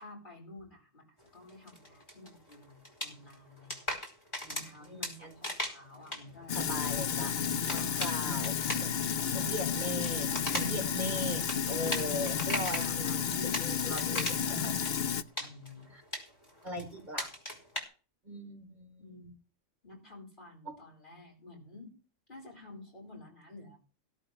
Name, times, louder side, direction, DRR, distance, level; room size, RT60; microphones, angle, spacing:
voice 1, 0.0-3.9 4.5-6.6 7.2-8.5 9.2-9.6 10.5-10.9 11.6-12.1 12.8-13.8 15.4-15.9 19.0-19.4 19.8-22.0 22.3-23.8, left 2 dB, 40° left, -1 dB, 4.8 m, -50 dB
sound 1, 1.2-12.9 13.3-14.6 14.8-17.8, left 1 dB, 20° left, 4.8 m, -40 dB
voice 2, 4.4-5.3 6.5-7.3 7.7-9.0 9.3-14.8 15.9-16.0 16.6-17.3 18.2-19.3 20.6-20.8, equal, 35° right, 1 dB, 4.7 m, -40 dB
Sink (filling or washing), 6.5-15.2, left 7 dB, 55° left, 0.9 m, -32 dB
17.0 x 12.0 x 3.2 m, 0.36 s
omnidirectional pair, 1.3 m